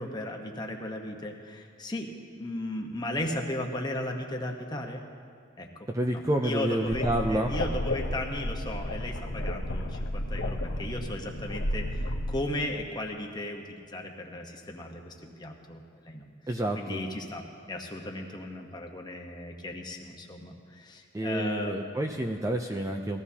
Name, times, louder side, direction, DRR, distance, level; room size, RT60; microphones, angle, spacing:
voice 1, 0.0-5.0 5.6-5.7 6.1-16.2 16.8-21.8, left 1 dB, 20° left, 2 dB, 1.0 m, -36 dB
voice 2, 5.9-7.6 16.5-17.0 21.1-23.2, right 1 dB, 15° right, 3 dB, 0.4 m, -29 dB
sound 1, 6.8-12.4, left 1 dB, 75° left, 0.9 m, -32 dB
20.0 x 14.5 x 2.8 m, 2.2 s
head